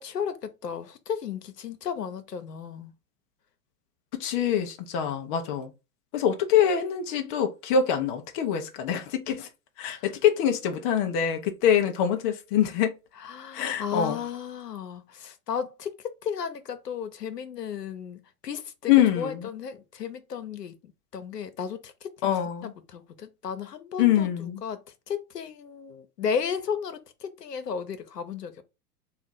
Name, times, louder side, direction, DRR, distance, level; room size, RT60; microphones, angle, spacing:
voice 1, 0.0-2.9 9.8-10.1 13.2-20.7 21.1-22.3 22.6-24.8 25.1-28.6, left 7 dB, 90° left, 0.8 m, -34 dB
voice 2, 4.1-5.7 6.1-9.5 9.8-12.9 13.5-14.2 18.9-19.5 22.2-22.7 24.0-24.6, left 9 dB, 20° left, 0.3 m, -24 dB
3.5 x 2.4 x 3.9 m
hypercardioid pair, 105°, 47 cm